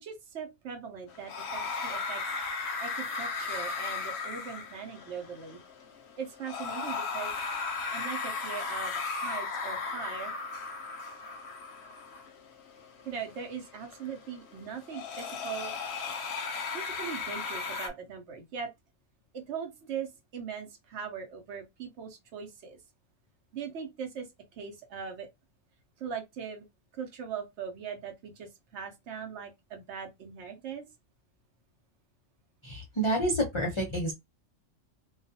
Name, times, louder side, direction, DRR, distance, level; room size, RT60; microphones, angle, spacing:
voice 1, 0.0-2.2 2.8-5.6 6.2-7.3 7.9-10.3 13.0-15.7 16.7-18.7 19.3-22.8 23.5-24.3 24.6-25.3 26.0-26.7 26.9-30.8, right 7 dB, 65° right, 1.0 m, -40 dB
sound 1, 1.1-17.9, left 4 dB, 65° left, 0.7 m, -36 dB
voice 2, 32.6-34.1, right 1 dB, 35° left, 0.5 m, -29 dB
2.3 x 2.3 x 2.6 m
omnidirectional pair, 1.3 m